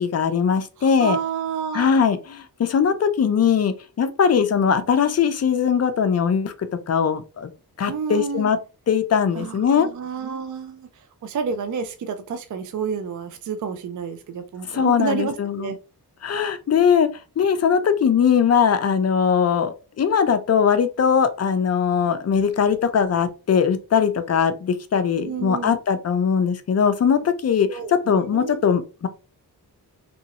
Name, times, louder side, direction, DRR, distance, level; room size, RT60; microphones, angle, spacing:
voice 1, 0.0-1.2 1.7-7.5 7.8-8.6 8.9-9.9 14.7-15.7 16.2-17.1 17.4-29.1, left 7 dB, 40° left, 0.5 m, -20 dB
voice 2, 0.8-1.9 7.9-8.5 9.3-15.8 25.2-25.8 27.7-28.6, right 6 dB, 50° right, 0.4 m, -30 dB
3.0 x 2.5 x 2.8 m
wide cardioid pair, 125°, 40 cm